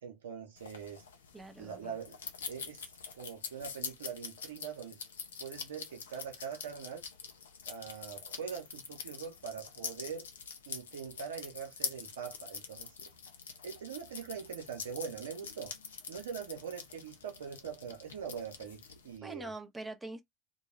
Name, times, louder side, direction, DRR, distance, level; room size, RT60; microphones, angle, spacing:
voice 1, 0.0-1.0 1.6-2.2 2.5-5.0 5.4-7.0 7.7-10.3 10.7-12.9 13.6-15.7 16.1-19.5, right 7 dB, 75° right, 0.7 m, -43 dB
sound 1, 0.6-19.2, left 6 dB, 80° left, 0.5 m, -45 dB
voice 2, 1.3-2.0 19.2-20.2, right 2 dB, 10° right, 0.7 m, -44 dB
2.3 x 2.2 x 3.0 m
figure-of-eight pair, 70°, 0 cm